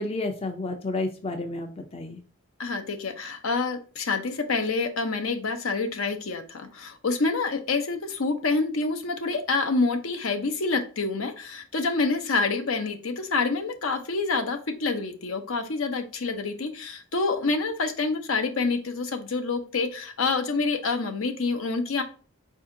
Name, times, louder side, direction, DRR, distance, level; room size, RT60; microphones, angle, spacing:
voice 1, 0.0-2.2, left 2 dB, 25° left, 4 dB, 0.4 m, -31 dB
voice 2, 2.6-22.0, left 3 dB, 75° left, 5 dB, 0.7 m, -27 dB
4.4 x 2.7 x 3.7 m, 0.37 s
head